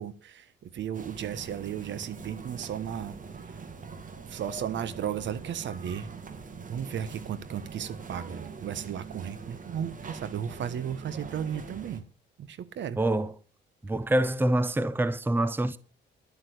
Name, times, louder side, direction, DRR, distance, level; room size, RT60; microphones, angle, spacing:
voice 1, 0.0-3.1 4.3-6.1 6.5-12.0 12.4-13.0, right 9 dB, 65° right, 1.3 m, -35 dB
sound 1, 0.9-12.0, right 5 dB, 40° right, 2.1 m, -43 dB
voice 2, 13.0-13.3 13.8-15.8, right 1 dB, 10° right, 0.8 m, -26 dB
11.5 x 8.0 x 8.2 m
cardioid pair, 90°, 20 cm